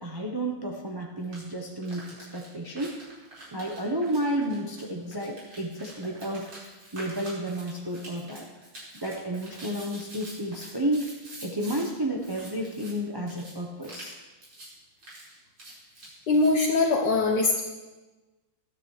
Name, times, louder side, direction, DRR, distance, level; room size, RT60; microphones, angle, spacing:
voice 1, 0.0-3.1 3.5-8.5 9.0-11.1 11.4-14.2, right 1 dB, 20° right, -1 dB, 0.6 m, -31 dB
sound 1, 1.2-1.4 1.8-11.9 12.2-12.9 13.3-13.5 13.8-14.1 14.4-14.7 15.0-16.5, right 1 dB, 85° right, 5.9 m, -46 dB
voice 2, 16.3-17.6, left 3 dB, 60° left, 0 dB, 1.6 m, -22 dB
20.0 x 13.0 x 3.3 m, 1.2 s
omnidirectional pair, 2.2 m